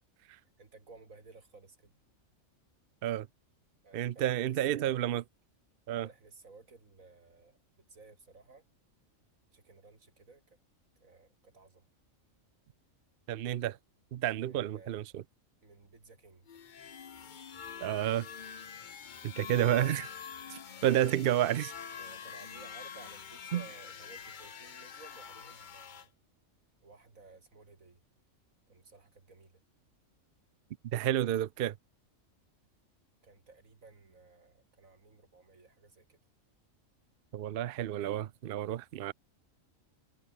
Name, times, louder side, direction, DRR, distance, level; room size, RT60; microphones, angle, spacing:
voice 1, 0.6-1.9 3.8-5.0 5.9-7.6 7.9-8.6 9.5-10.6 11.0-11.9 14.4-14.9 15.6-16.5 22.0-26.1 26.8-28.0 28.7-29.6 33.2-36.2, right 3 dB, 90° right, 3.6 m, -56 dB
voice 2, 3.9-5.2 5.9-6.1 13.3-13.8 14.1-15.2 17.8-18.3 19.2-20.1 20.5-21.7 23.5-23.6 30.9-31.7 37.3-39.1, right 12 dB, 60° right, 0.6 m, -30 dB
sound 1, 16.5-26.1, left 7 dB, 45° left, 0.8 m, -46 dB
omnidirectional pair, 1.4 m